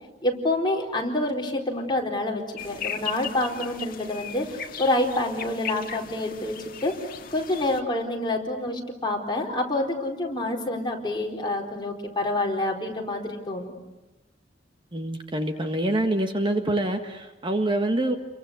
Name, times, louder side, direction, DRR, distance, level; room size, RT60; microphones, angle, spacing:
voice 1, 0.2-6.5 6.8-6.9 7.3-13.7, left 1 dB, 25° left, 0 dB, 4.3 m, -27 dB
sound 1, 2.6-7.8, left 8 dB, 50° left, 1.7 m, -37 dB
voice 2, 14.9-18.1, right 1 dB, 30° right, 5 dB, 1.7 m, -26 dB
30.0 x 23.0 x 8.1 m, 1.0 s
head